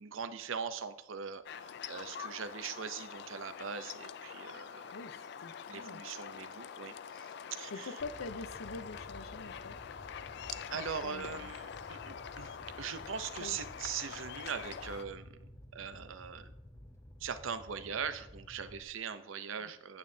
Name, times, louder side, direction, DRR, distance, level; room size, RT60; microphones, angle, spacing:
voice 1, 0.0-4.9 5.7-7.9 10.7-15.4 15.7-16.5 17.2-20.0, right 6 dB, 75° right, 12 dB, 0.6 m, -41 dB
sound 1, 1.4-15.0, left 7 dB, 55° left, 0.3 m, -45 dB
voice 2, 4.9-6.0 7.7-9.8 10.7-11.5 13.4-13.6 19.6-19.7, left 3 dB, 90° left, 11 dB, 0.7 m, -45 dB
Fire, 8.0-18.8, left 1 dB, 15° left, 0.7 m, -53 dB
9.5 x 8.7 x 2.7 m, 0.80 s
head